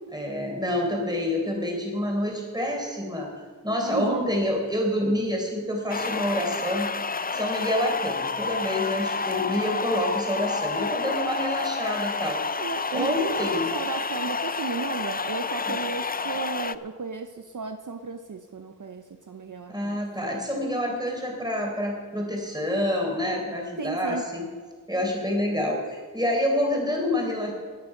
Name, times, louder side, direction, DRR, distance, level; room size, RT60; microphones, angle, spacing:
voice 1, 0.1-3.3 3.6-6.9 7.3-12.4 12.9-13.7 15.6-15.8 19.7-24.5 24.9-27.5, left 1 dB, 10° right, 0 dB, 4.0 m, -27 dB
voice 2, 3.8-4.4 12.6-20.0 23.8-24.3, right 5 dB, 65° right, 7 dB, 0.7 m, -34 dB
sound 1, 5.9-16.8, left 4 dB, 30° left, 0.4 m, -29 dB
20.0 x 7.0 x 5.9 m, 1.5 s
wide cardioid pair, 50°, 33 cm